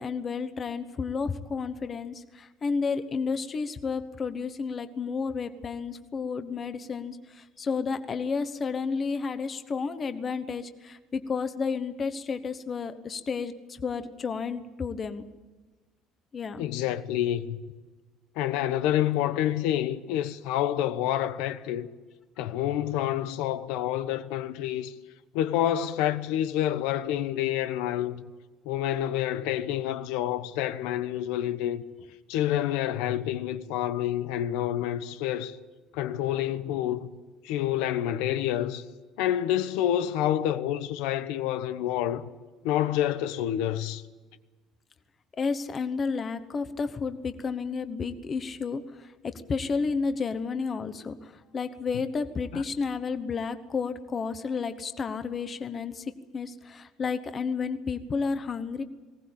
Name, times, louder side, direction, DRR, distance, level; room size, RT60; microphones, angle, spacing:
voice 1, 0.0-15.2 16.3-16.7 45.4-58.8, left 5 dB, 25° left, 1.0 m, -31 dB
voice 2, 16.6-17.6 18.4-21.9 22.4-24.9 25.3-28.2 28.6-31.8 32.3-35.6 35.9-37.1 37.4-38.8 39.2-42.2 42.6-44.0 52.5-52.6, left 12 dB, 80° left, 1.1 m, -28 dB
20.0 x 18.0 x 8.7 m
cardioid pair, 170°, 0 cm